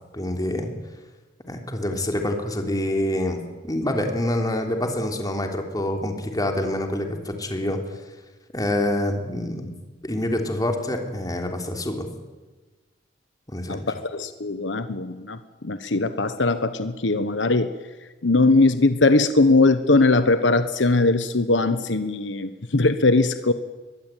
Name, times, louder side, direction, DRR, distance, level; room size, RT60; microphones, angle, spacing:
voice 1, 0.1-0.7 1.5-7.8 8.5-9.7 10.0-12.1 13.5-13.8, left 1 dB, 20° left, 3 dB, 3.4 m, -26 dB
voice 2, 13.7-15.4 15.6-17.7 18.2-23.5, left 2 dB, 75° left, 11 dB, 1.2 m, -20 dB
22.5 x 21.5 x 9.2 m, 1.2 s
head